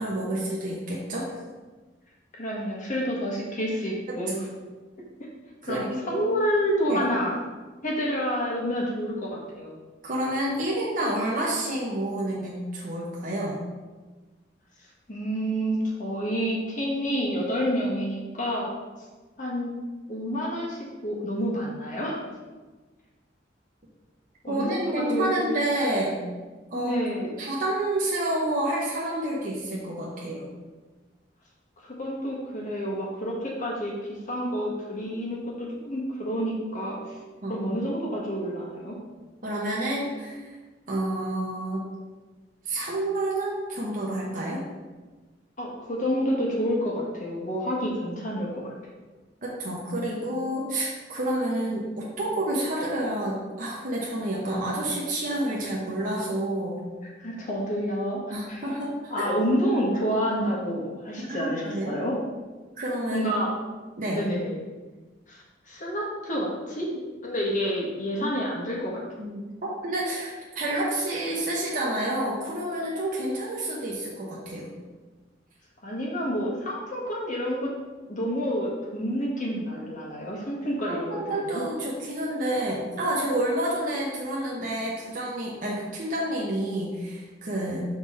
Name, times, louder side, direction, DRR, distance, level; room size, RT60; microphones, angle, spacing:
voice 1, 0.0-1.3 4.1-4.4 5.6-6.3 6.9-7.0 10.0-13.6 24.5-26.2 26.7-27.0 27.4-30.5 37.4-37.6 39.4-40.5 40.9-41.9 42.7-44.6 49.4-56.9 58.3-59.4 61.2-61.9 62.8-63.3 64.0-64.2 68.2-68.4 69.2-69.5 69.8-74.7 80.9-87.9, right 1 dB, 50° right, -5 dB, 0.9 m, -29 dB
voice 2, 2.3-4.4 5.7-7.4 7.8-9.8 15.1-18.7 19.4-19.8 20.1-22.2 24.4-25.6 26.7-27.4 31.8-37.2 37.5-38.9 45.6-48.7 57.0-58.6 59.1-62.2 63.1-63.5 64.1-64.6 65.3-66.9 67.2-69.0 75.8-77.7 78.1-81.6, equal, 45° left, -3 dB, 1.3 m, -29 dB
5.9 x 3.9 x 4.1 m, 1.3 s
head